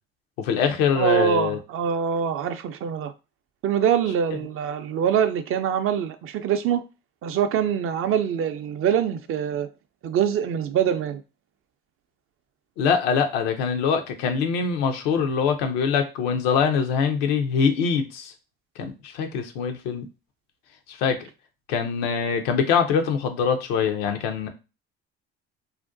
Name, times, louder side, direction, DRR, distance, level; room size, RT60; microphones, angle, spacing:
voice 1, 0.4-1.6 12.8-18.3 18.8-20.1 20.9-21.3 21.7-24.5, left 6 dB, 80° left, 0.5 m, -23 dB
voice 2, 1.0-3.1 3.6-6.8 7.2-9.7 10.0-11.2, right 9 dB, 45° right, 0.4 m, -24 dB
2.5 x 2.2 x 2.4 m
hypercardioid pair, 60°, 30 cm